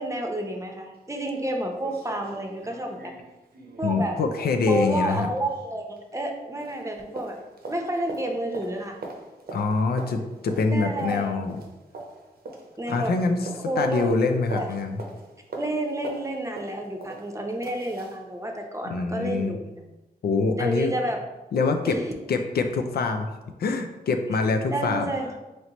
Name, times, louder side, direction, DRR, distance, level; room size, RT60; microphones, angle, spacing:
voice 1, 0.0-3.1 3.8-4.2 4.7-7.4 7.7-9.0 10.7-11.4 12.8-13.1 13.7-14.1 14.5-14.7 15.6-19.9 20.5-21.2 21.9-22.0 24.7-25.3, right 1 dB, 20° right, 2 dB, 0.7 m, -30 dB
sound 1, 0.9-1.0 1.4-1.5 1.8-6.4 6.6-18.2 18.6-18.7, right 3 dB, 80° right, 0.6 m, -42 dB
voice 2, 3.8-5.3 9.5-11.6 12.9-13.4 13.8-14.9 18.8-19.6 20.2-20.9 21.5-22.0 22.3-23.3 23.6-25.1, left 4 dB, 85° left, 6 dB, 0.4 m, -25 dB
4.1 x 3.1 x 2.9 m, 1.1 s
cardioid pair, 55°, 16 cm